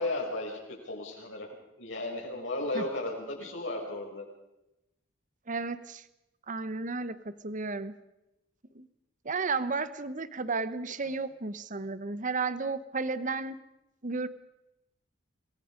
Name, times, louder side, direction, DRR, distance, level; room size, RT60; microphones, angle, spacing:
voice 1, 0.0-1.5 1.8-4.2 11.0-11.1, left 2 dB, 70° left, 0 dB, 6.9 m, -35 dB
voice 2, 5.5-6.0 6.5-7.9 8.7-8.9 9.2-13.6 14.0-14.3, right 4 dB, 40° right, 14 dB, 1.0 m, -33 dB
27.0 x 21.0 x 5.2 m, 0.92 s
head